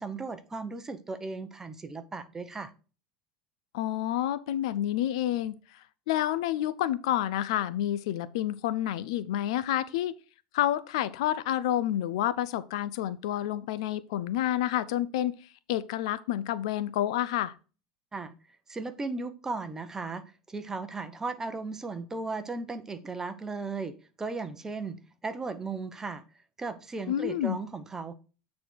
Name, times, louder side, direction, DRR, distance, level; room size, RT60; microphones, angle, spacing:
voice 1, 0.0-2.7 18.1-18.4 18.7-26.2 26.6-28.1, right 3 dB, 15° right, 1.0 m, -36 dB
voice 2, 3.7-5.5 6.1-10.1 10.5-15.3 15.7-17.5 27.1-27.6, left 12 dB, 80° left, 0.6 m, -29 dB
8.7 x 4.2 x 4.6 m
supercardioid pair, 120°, 3 cm